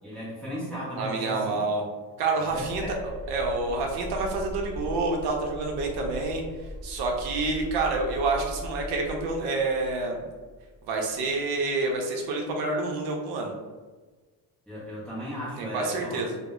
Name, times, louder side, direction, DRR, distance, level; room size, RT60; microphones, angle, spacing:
voice 1, 0.0-1.6 2.5-3.0 14.7-16.2, equal, ahead, -8 dB, 0.4 m, -35 dB
voice 2, 1.0-1.9 2.2-3.0 3.3-6.4 6.8-10.3 10.9-13.5 15.6-16.4, right 3 dB, 65° right, 1 dB, 0.6 m, -28 dB
sound 1, 2.5-11.4, equal, 30° left, 0.9 m, -40 dB
2.0 x 2.0 x 3.5 m, 1.3 s
cardioid pair, 165°, 42 cm